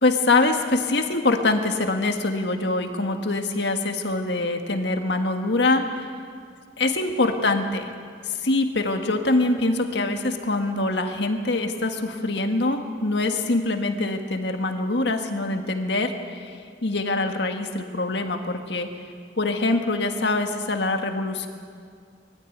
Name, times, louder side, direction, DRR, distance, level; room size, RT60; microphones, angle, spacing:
voice 1, 0.0-5.8 6.8-7.9 8.4-16.4 16.8-18.9 19.4-21.5, left 2 dB, 70° left, 5 dB, 1.7 m, -24 dB
21.0 x 14.0 x 9.4 m, 2.2 s
head